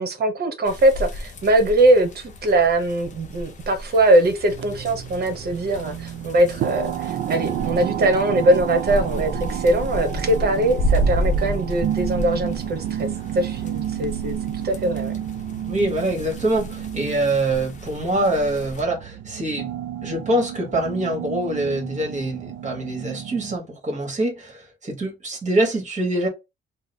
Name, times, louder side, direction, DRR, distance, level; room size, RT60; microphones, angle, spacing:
voice 1, 0.0-13.1 13.3-14.4 14.6-15.1, right 1 dB, 55° right, 1.0 m, -21 dB
sound 1, 0.7-18.8, equal, 40° left, 0.7 m, -32 dB
sound 2, 4.5-23.6, right 11 dB, 70° right, 0.5 m, -31 dB
voice 2, 15.6-19.7 20.0-26.3, right 1 dB, 35° right, 1.5 m, -24 dB
2.9 x 2.0 x 4.1 m
cardioid pair, 90°, 20 cm